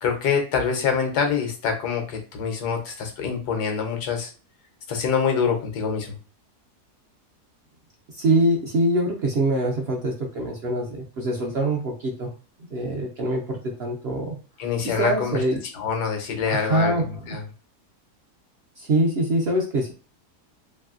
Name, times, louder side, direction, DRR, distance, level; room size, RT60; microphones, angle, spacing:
voice 1, 0.0-4.3 4.9-6.2 14.6-15.4 15.7-17.4, left 6 dB, 85° left, 4 dB, 1.3 m, -25 dB
voice 2, 8.1-12.3 12.7-14.4 14.8-15.6 16.5-17.3 18.8-19.9, right 1 dB, 70° right, 0 dB, 0.6 m, -24 dB
3.1 x 2.6 x 2.4 m, 0.37 s
omnidirectional pair, 1.7 m